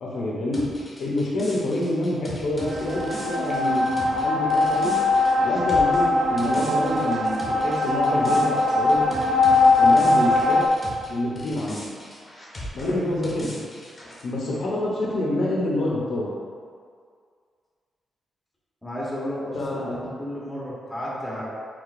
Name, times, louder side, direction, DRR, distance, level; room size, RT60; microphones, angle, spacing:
voice 1, 0.0-0.6 1.0-5.0 5.4-9.1 9.8-10.6 11.1-12.0 12.7-13.5 14.2-16.3 19.5-20.0, left 1 dB, 70° left, -4 dB, 0.7 m, -27 dB
sound 1, 0.5-11.1 11.4-14.2, left 1 dB, 20° left, 1.0 m, -39 dB
sound 2, 2.6-10.7, left 2 dB, 60° right, 0.3 m, -21 dB
voice 2, 12.7-13.1 14.4-14.6 18.8-21.4, equal, 5° left, -7 dB, 1.2 m, -33 dB
4.8 x 3.8 x 2.5 m, 2.1 s
cardioid pair, 120°, 0 cm